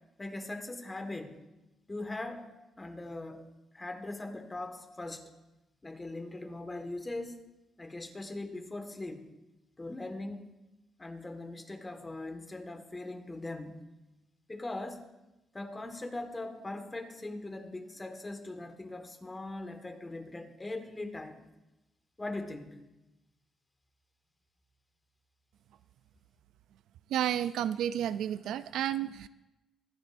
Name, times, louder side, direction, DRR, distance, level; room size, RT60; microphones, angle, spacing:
voice 1, 0.2-1.4 1.9-2.5 2.8-3.5 3.7-5.3 5.8-7.4 7.8-9.3 9.8-10.5 11.0-13.8 14.5-15.1 15.5-21.4 22.2-22.8, left 2 dB, 20° left, 6 dB, 1.6 m, -40 dB
voice 2, 27.1-29.3, right 10 dB, 80° right, 14 dB, 0.4 m, -31 dB
25.5 x 10.0 x 2.6 m, 1.0 s
cardioid pair, 90°, 0 cm